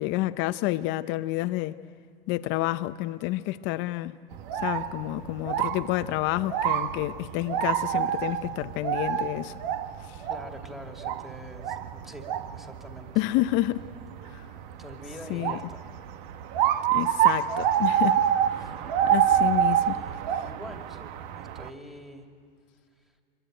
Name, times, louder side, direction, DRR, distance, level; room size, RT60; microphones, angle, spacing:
voice 1, 0.0-1.8 2.3-4.1 4.6-9.6 10.0-10.2 13.2-13.8 14.3-14.5 15.3-15.6 16.9-18.2 18.5-18.7 19.0-20.0, left 17 dB, 40° left, 0.7 m, -29 dB
sound 1, 4.3-21.7, right 10 dB, 55° right, 1.2 m, -28 dB
voice 2, 10.3-13.1 14.8-15.9 18.5-19.0 19.3-19.4 19.7-22.3, equal, ahead, 2.6 m, -45 dB
25.5 x 22.5 x 9.2 m
hypercardioid pair, 125°, 29 cm